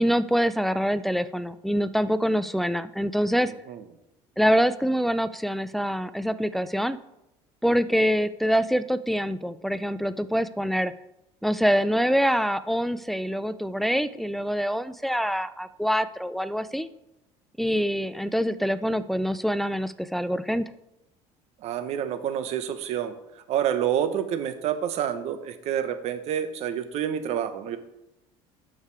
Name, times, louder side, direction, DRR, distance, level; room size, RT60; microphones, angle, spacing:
voice 1, 0.0-3.5 4.4-7.0 7.6-10.9 11.4-16.9 17.6-20.7, equal, ahead, 12 dB, 0.3 m, -25 dB
voice 2, 21.6-27.8, right 9 dB, 55° right, 10 dB, 1.0 m, -28 dB
8.8 x 6.6 x 4.8 m, 0.88 s
cardioid pair, 130°, 13 cm